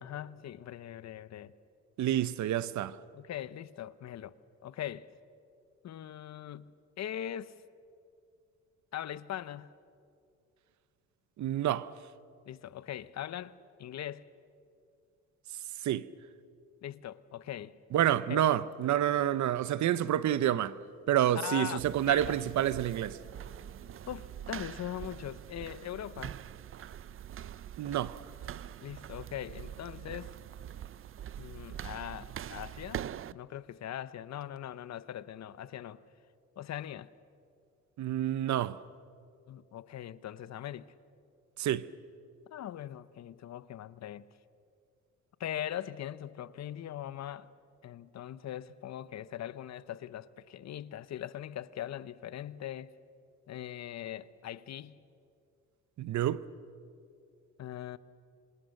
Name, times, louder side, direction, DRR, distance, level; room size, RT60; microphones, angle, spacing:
voice 1, 0.0-1.5 3.1-4.3 4.6-5.1 5.8-6.7 7.0-7.5 8.9-9.7 12.5-13.5 13.8-14.2 16.8-17.8 18.3-18.6 21.3-21.8 22.1-22.4 24.1-26.4 28.8-30.4 31.4-33.1 33.3-36.0 36.6-37.1 39.5-40.9 42.5-44.3 45.4-47.5 47.8-52.9 53.5-55.0 57.6-58.0, left 11 dB, 60° left, 0.9 m, -41 dB
voice 2, 2.0-3.0 11.4-11.9 15.8-16.1 17.9-20.8 21.1-23.2 27.8-28.2 38.0-38.8 41.6-41.9 56.0-56.4, right 11 dB, 70° right, 0.9 m, -28 dB
sound 1, 21.8-33.3, right 10 dB, 45° right, 0.5 m, -44 dB
27.0 x 26.0 x 6.6 m
cardioid pair, 90°, 30 cm